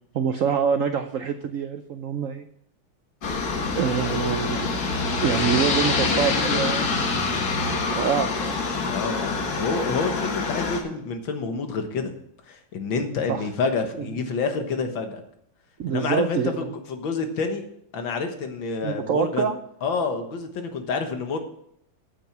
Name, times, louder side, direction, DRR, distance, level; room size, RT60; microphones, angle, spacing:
voice 1, 0.1-2.5 3.8-4.8 5.2-8.6 13.3-13.5 14.0-14.1 15.8-16.6 18.8-19.6, right 7 dB, 80° right, 9 dB, 0.7 m, -26 dB
Aircraft, 3.2-10.8, left 4 dB, 55° left, 1.8 m, -25 dB
voice 2, 8.9-12.1 12.5-15.2 15.9-17.6 17.9-19.5 19.8-21.4, left 4 dB, 75° left, 6 dB, 2.1 m, -28 dB
9.1 x 8.9 x 6.0 m, 0.73 s
omnidirectional pair, 2.1 m